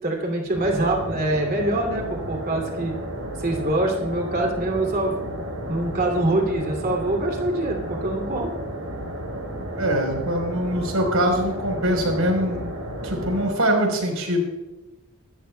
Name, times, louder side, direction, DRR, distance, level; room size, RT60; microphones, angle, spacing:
voice 1, 0.0-2.9 3.4-5.2 5.7-8.5, right 1 dB, 45° right, 0 dB, 2.6 m, -24 dB
sound 1, 0.5-13.5, right 1 dB, 65° right, 3.9 m, -33 dB
voice 2, 9.7-12.7 13.0-14.4, equal, 85° right, 2 dB, 4.2 m, -23 dB
25.0 x 13.5 x 2.3 m, 1.1 s
head